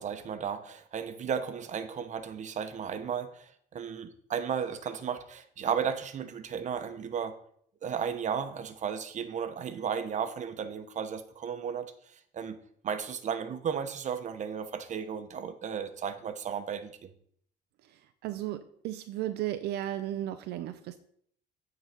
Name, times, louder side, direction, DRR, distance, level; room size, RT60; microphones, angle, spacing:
voice 1, 0.0-7.4 7.8-12.6 12.8-17.1, right 7 dB, 45° right, 9 dB, 0.9 m, -34 dB
voice 2, 17.9-21.0, right 13 dB, 80° right, 9 dB, 0.5 m, -35 dB
9.0 x 3.9 x 5.8 m, 0.63 s
cardioid pair, 110°, 17 cm